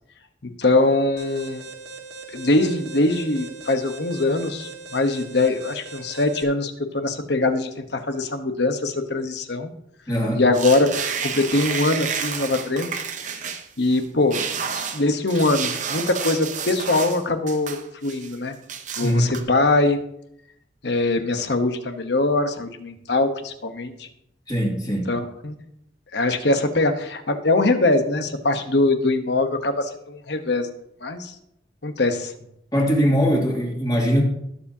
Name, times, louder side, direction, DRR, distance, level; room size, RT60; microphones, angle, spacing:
voice 1, 0.6-1.6 2.3-9.7 10.3-10.9 11.2-12.9 13.8-14.4 14.7-18.6 19.0-20.0 20.8-24.1 25.1-25.5 26.1-30.7 31.0-31.3 31.8-32.3 33.0-33.1, left 2 dB, 65° left, 7 dB, 1.1 m, -22 dB
Alarm, 1.2-6.4, right 4 dB, 70° right, 1.5 m, -40 dB
voice 2, 10.1-10.4 19.0-19.2 24.5-25.1 32.7-34.2, equal, 20° left, -2 dB, 2.4 m, -21 dB
sound 1, 10.5-14.0 14.3-17.2 17.5-18.4 18.7-19.4, right 6 dB, 40° right, 0.8 m, -30 dB
19.5 x 7.1 x 2.8 m, 0.77 s
head